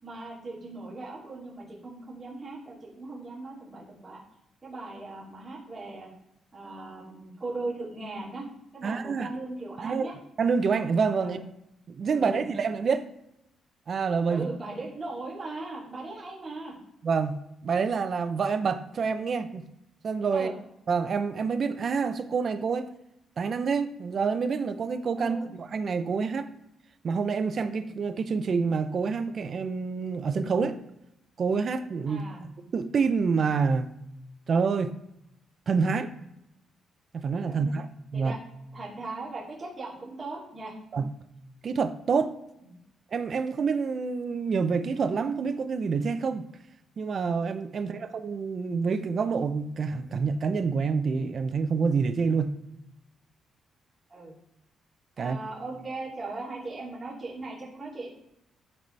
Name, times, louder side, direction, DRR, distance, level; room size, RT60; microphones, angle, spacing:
voice 1, 0.0-4.2 4.6-6.1 6.5-8.5 8.7-10.1 11.2-11.4 12.1-12.5 14.3-16.8 20.3-20.6 25.2-25.5 32.1-32.4 37.5-37.7 38.1-38.4 38.7-40.7 42.7-42.8 54.1-54.4 55.2-58.1, right 2 dB, 25° right, -7 dB, 2.5 m, -38 dB
voice 2, 8.8-9.3 9.8-10.1 10.4-11.4 12.0-13.1 13.9-14.5 17.0-19.7 20.0-20.5 20.9-22.9 23.4-26.5 27.0-30.8 31.4-32.2 32.7-33.9 34.5-34.9 35.7-36.1 37.1-37.9 38.1-38.4 40.9-41.1 41.6-42.4 43.1-46.5 47.0-52.5 55.2-55.4, right 5 dB, 45° right, 9 dB, 0.5 m, -27 dB
11.5 x 4.0 x 3.2 m, 0.82 s
cardioid pair, 120°, 0 cm